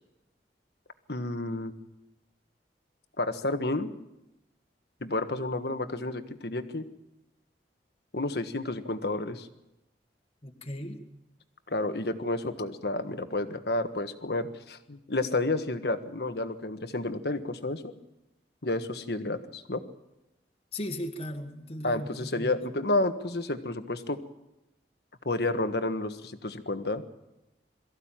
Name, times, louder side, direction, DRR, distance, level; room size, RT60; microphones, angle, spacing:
voice 1, 1.1-1.7 3.2-3.9 5.0-6.8 8.1-9.5 11.7-17.9 18.6-19.8 21.8-24.2 25.2-27.0, left 2 dB, 65° left, 8 dB, 1.5 m, -30 dB
voice 2, 10.4-11.0 20.7-22.5, left 1 dB, 35° left, 3 dB, 1.8 m, -37 dB
23.0 x 14.5 x 9.0 m, 0.92 s
head